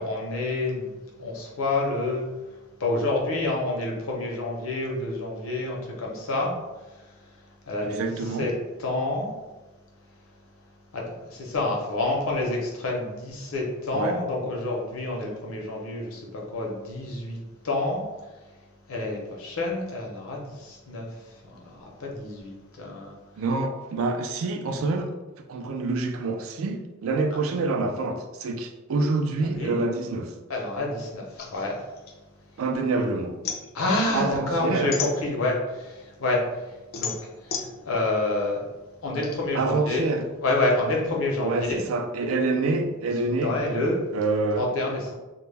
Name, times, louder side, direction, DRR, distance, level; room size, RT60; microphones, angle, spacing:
voice 1, 0.0-2.3 2.8-8.5 8.8-9.3 10.9-18.5 18.9-23.2 29.4-29.8 30.5-31.9 33.0-33.1 33.7-38.7 39.0-40.1 40.4-41.9 43.1-44.0 44.6-45.1, left 2 dB, 80° left, 0.6 m, -28 dB
voice 2, 7.9-8.5 13.9-14.2 23.4-25.2 25.5-30.3 32.6-33.3 34.1-34.9 39.5-40.3 41.4-43.6 44.1-44.7, right 3 dB, 70° right, 0.3 m, -26 dB
sound 1, 31.4-32.9 33.2-35.7 36.2-39.3, left 7 dB, 45° left, 0.3 m, -35 dB
2.1 x 2.0 x 3.2 m
head